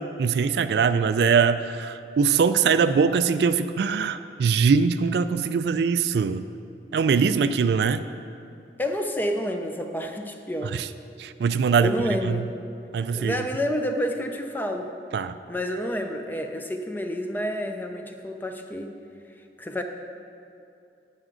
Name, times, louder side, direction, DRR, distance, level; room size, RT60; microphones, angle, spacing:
voice 1, 0.0-6.4 6.9-8.0 10.7-10.9 11.2-11.9 12.2-12.4 12.9-13.5 15.1-15.3, right 6 dB, 65° right, 12 dB, 0.3 m, -22 dB
voice 2, 8.8-10.8 11.8-12.5 13.1-14.9 15.5-18.9 19.6-19.8, equal, 10° left, 5 dB, 0.5 m, -29 dB
11.0 x 8.7 x 3.8 m, 2.6 s
head